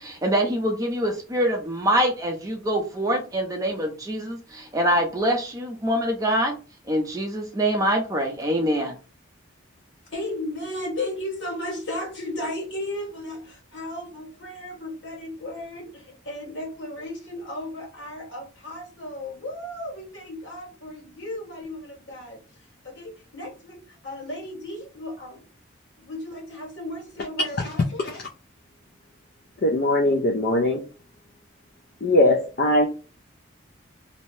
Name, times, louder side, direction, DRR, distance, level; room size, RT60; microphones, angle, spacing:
voice 1, 0.0-6.6 6.9-8.9, equal, 15° right, 0.5 m, -24 dB
voice 2, 10.1-22.4 22.8-25.4 26.0-28.1, left 1 dB, 70° left, 1.5 m, -35 dB
voice 3, 29.6-30.8 32.0-32.9, left 1 dB, 50° left, 0.4 m, -20 dB
2.7 x 2.1 x 3.1 m
head